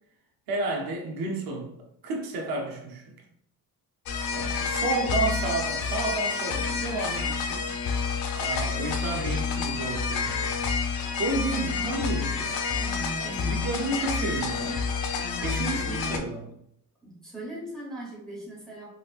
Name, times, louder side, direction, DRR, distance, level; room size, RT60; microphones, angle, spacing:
voice 1, 0.5-3.1 4.3-7.7 8.4-10.5 10.9-12.6 13.1-14.8 15.4-16.5, right 3 dB, 80° right, 0.7 m, -32 dB
sound 1, 4.1-16.2, left 5 dB, 75° left, 0.5 m, -29 dB
voice 2, 12.7-13.5 15.2-16.2 17.0-18.9, equal, ahead, 1.1 m, -38 dB
4.0 x 2.4 x 2.4 m
cardioid pair, 165°, 35 cm